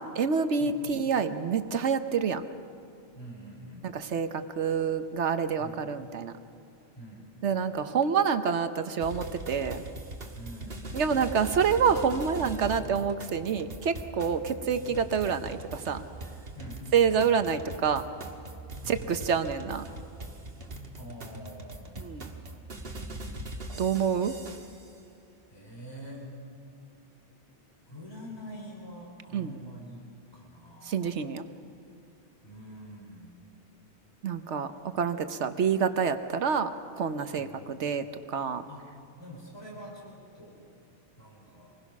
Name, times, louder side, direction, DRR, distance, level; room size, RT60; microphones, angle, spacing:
voice 1, 0.0-2.4 3.8-6.3 7.4-9.8 10.9-16.0 16.9-18.0 18.9-19.9 22.0-22.3 23.8-24.3 29.3-29.6 30.8-31.5 34.2-38.6, right 6 dB, 75° right, 10 dB, 1.2 m, -27 dB
voice 2, 3.1-3.9 5.6-5.9 6.9-7.3 10.3-10.9 16.5-16.9 18.8-19.1 21.0-22.0 25.5-26.3 27.8-31.2 32.4-33.4 37.4-37.7 38.7-38.9 39.2-40.6 41.2-41.7, equal, 20° left, -2 dB, 4.1 m, -45 dB
sound 1, 9.0-24.9, right 1 dB, 55° right, 1.8 m, -41 dB
26.0 x 20.5 x 6.0 m, 2.7 s
omnidirectional pair, 1.2 m